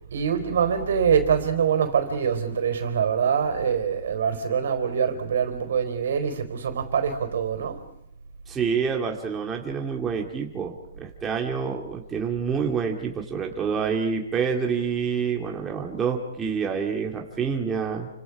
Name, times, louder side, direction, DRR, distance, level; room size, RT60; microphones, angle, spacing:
voice 1, 0.1-7.8, right 7 dB, 70° right, 4.2 m, -24 dB
voice 2, 8.5-18.1, right 6 dB, 15° right, 2.4 m, -27 dB
29.5 x 25.5 x 4.9 m
hypercardioid pair, 155°, 0 cm